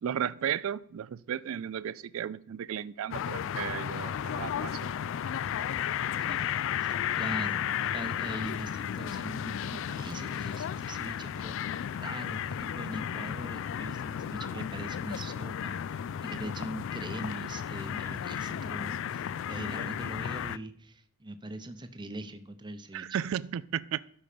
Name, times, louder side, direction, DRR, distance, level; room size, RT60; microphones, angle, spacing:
voice 1, 0.0-4.9 22.9-24.0, right 9 dB, 65° right, 18 dB, 0.3 m, -34 dB
sound 1, 3.1-20.6, left 9 dB, 60° left, 0.3 m, -34 dB
voice 2, 6.1-23.2, right 1 dB, 20° right, 10 dB, 0.7 m, -42 dB
12.5 x 5.5 x 5.1 m, 0.65 s
head